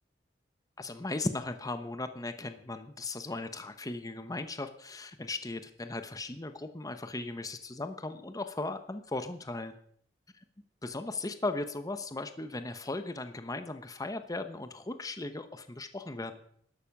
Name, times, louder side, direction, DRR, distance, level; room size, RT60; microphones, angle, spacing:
voice 1, 0.8-9.8 10.8-16.4, left 2 dB, 20° left, 9 dB, 0.9 m, -37 dB
12.5 x 11.5 x 6.0 m, 0.63 s
head